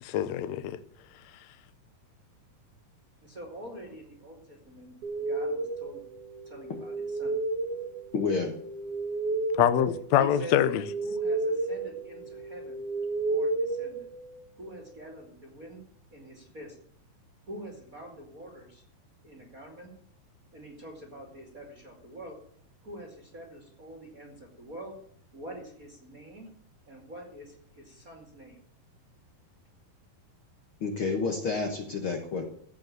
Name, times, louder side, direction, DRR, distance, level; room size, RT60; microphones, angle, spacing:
voice 1, 0.0-0.8 9.6-10.8, left 11 dB, 75° left, 1.6 m, -24 dB
voice 2, 3.2-6.0 6.5-7.4 10.2-10.6 11.0-12.8 13.3-14.1 14.6-15.8 16.1-16.8 17.5-18.8 19.2-19.9 20.5-22.4 22.8-24.9 25.3-26.5 26.9-28.6, right 1 dB, 25° right, 2.3 m, -45 dB
sound 1, 5.0-14.7, right 2 dB, 60° right, 2.9 m, -32 dB
voice 3, 8.1-8.5 30.8-32.4, left 4 dB, 60° left, 1.4 m, -29 dB
16.0 x 5.5 x 8.9 m
omnidirectional pair, 4.3 m